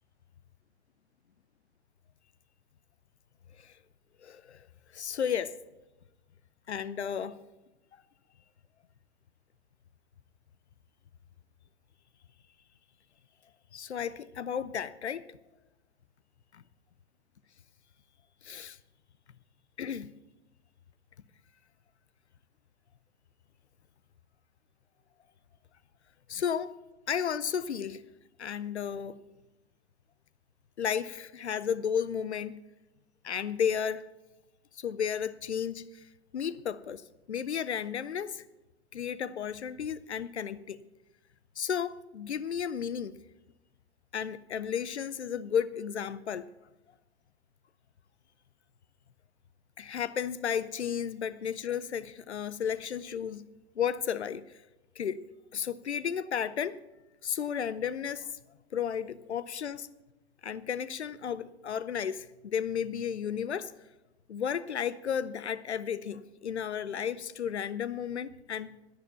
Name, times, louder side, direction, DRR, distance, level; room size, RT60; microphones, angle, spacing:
voice 1, 4.2-4.7 4.9-5.5 6.7-7.4 13.7-15.2 16.5-16.6 18.4-18.8 19.8-20.1 26.3-26.7 27.1-28.0 28.4-29.2 30.8-32.6 33.2-34.1 34.7-36.1 36.3-37.0 37.3-38.4 38.9-40.8 41.6-43.2 44.1-46.5 49.8-53.4 53.8-54.4 55.0-55.2 55.5-56.8 57.2-58.3 58.7-59.9 60.4-63.7 64.3-68.7, left 8 dB, 80° left, 0.6 m, -33 dB
11.0 x 10.5 x 5.7 m
figure-of-eight pair, 95°, 33 cm